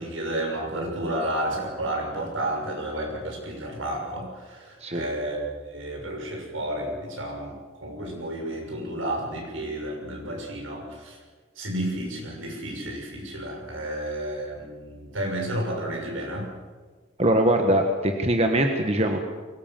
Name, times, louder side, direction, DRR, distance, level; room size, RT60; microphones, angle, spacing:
voice 1, 0.0-11.2 11.6-16.5, right 1 dB, 80° right, 1 dB, 6.4 m, -31 dB
voice 2, 17.2-19.2, right 1 dB, 30° right, 4 dB, 1.5 m, -22 dB
23.0 x 18.5 x 7.5 m, 1.4 s
head